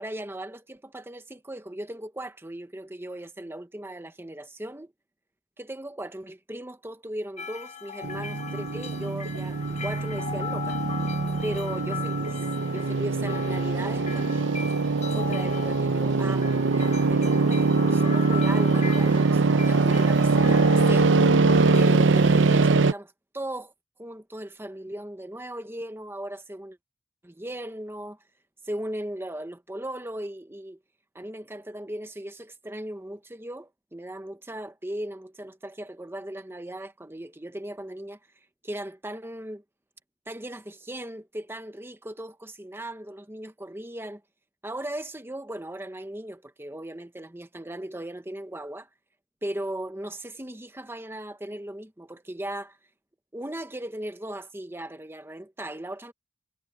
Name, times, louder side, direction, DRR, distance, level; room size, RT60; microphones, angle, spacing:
voice 1, 0.0-4.9 5.6-10.8 11.4-12.4 12.7-14.5 15.1-21.1 21.8-23.7 24.0-26.8 27.2-28.2 28.6-30.8 31.1-38.2 38.6-39.6 40.3-44.2 44.6-48.9 49.4-52.8 53.3-56.1, right 1 dB, 10° right, 1.0 m, -37 dB
sound 1, 7.4-22.4, left 7 dB, 35° left, 1.0 m, -39 dB
sound 2, 8.0-22.9, right 3 dB, 70° right, 0.7 m, -22 dB
head